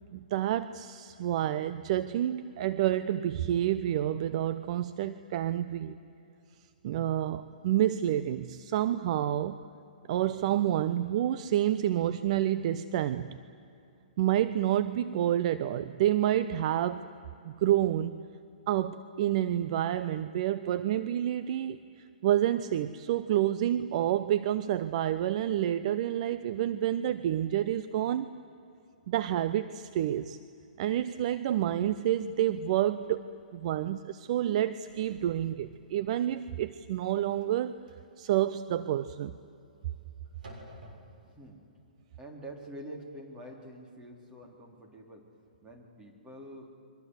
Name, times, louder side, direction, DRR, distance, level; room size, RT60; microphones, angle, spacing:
voice 1, 0.1-6.0 6.8-9.6 10.1-13.4 14.2-17.1 17.4-18.2 18.7-21.8 22.2-28.3 29.1-30.4 30.8-33.2 33.5-37.8 38.2-39.3, right 12 dB, 45° right, 13 dB, 0.8 m, -29 dB
sound 1, 31.9-32.0 32.4-32.5 33.0-33.2 33.6-33.9 34.2-41.5, right 1 dB, 65° right, 6.7 m, -53 dB
voice 2, 41.3-41.6 42.2-45.3 45.6-46.7, right 1 dB, 15° right, 1 dB, 3.5 m, -46 dB
30.0 x 23.5 x 8.1 m, 2.6 s
figure-of-eight pair, 125°, 5 cm